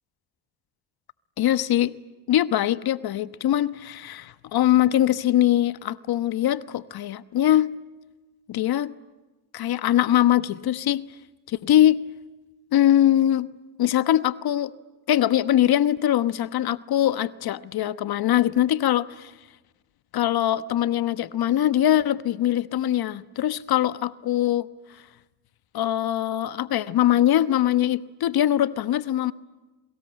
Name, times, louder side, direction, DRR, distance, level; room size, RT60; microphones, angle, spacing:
voice 1, 1.4-1.9 2.3-7.7 8.5-8.9 9.5-11.0 11.5-12.0 12.7-13.5 13.8-14.7 15.1-19.3 20.1-24.7 25.7-29.3, left 12 dB, 55° left, 13 dB, 1.1 m, -22 dB
27.5 x 24.0 x 8.8 m, 1.1 s
hypercardioid pair, 60°, 44 cm